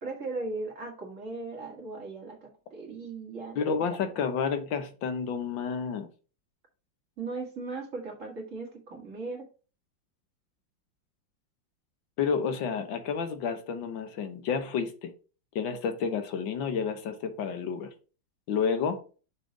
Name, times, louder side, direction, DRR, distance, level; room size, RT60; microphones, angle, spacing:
voice 1, 0.0-3.6 7.2-9.5, right 3 dB, 45° right, 2.2 m, -37 dB
voice 2, 3.6-6.1 12.2-15.1 15.6-17.9 18.5-19.0, left 6 dB, 90° left, 1.7 m, -30 dB
6.5 x 3.7 x 5.1 m
omnidirectional pair, 2.0 m